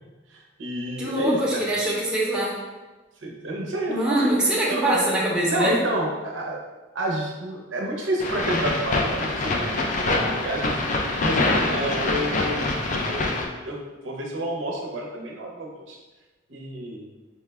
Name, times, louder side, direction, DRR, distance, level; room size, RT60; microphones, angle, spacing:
voice 1, 0.3-1.6 3.2-4.4 4.7-5.0 5.5-6.6 6.9-9.7 10.1-10.9 11.2-13.3 13.6-13.8 14.0-16.0 16.5-17.1, right 1 dB, 75° right, -1 dB, 0.7 m, -29 dB
voice 2, 1.0-2.5 3.9-5.7, right 1 dB, 5° right, -7 dB, 0.7 m, -23 dB
sound 1, 8.2-13.5, left 2 dB, 40° left, 0.4 m, -25 dB
4.6 x 2.3 x 3.3 m, 1.2 s
head